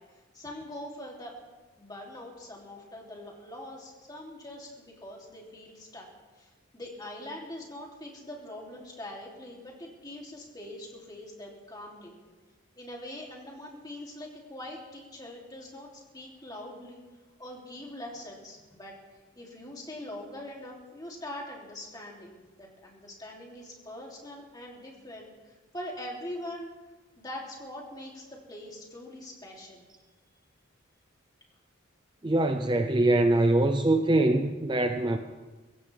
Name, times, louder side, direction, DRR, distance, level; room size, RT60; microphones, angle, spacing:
voice 1, 0.1-1.4 1.8-6.1 6.3-12.2 12.7-17.0 17.4-26.7 27.2-29.8, left 1 dB, 20° left, -2 dB, 3.0 m, -43 dB
voice 2, 32.2-35.2, right 2 dB, 20° right, 6 dB, 0.6 m, -23 dB
23.5 x 16.0 x 3.5 m, 1.3 s
head